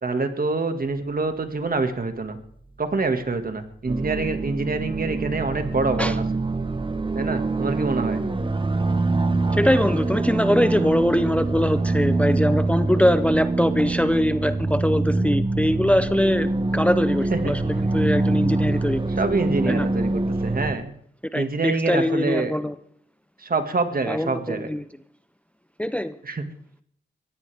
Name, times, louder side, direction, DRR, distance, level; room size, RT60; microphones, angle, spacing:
voice 1, 0.0-2.4 2.8-6.2 7.2-8.2 17.4-17.5 19.2-20.9 21.3-22.5 23.4-24.7 26.2-26.4, right 3 dB, 50° right, 7 dB, 1.9 m, -26 dB
sound 1, 3.9-20.7, right 2 dB, 25° right, 1.2 m, -24 dB
voice 2, 9.5-19.1 19.7-19.9 21.3-22.8 24.1-24.8 25.8-26.2, left 1 dB, 5° left, 12 dB, 0.6 m, -22 dB
22.5 x 16.5 x 3.5 m, 0.65 s
cardioid pair, 75°, 19 cm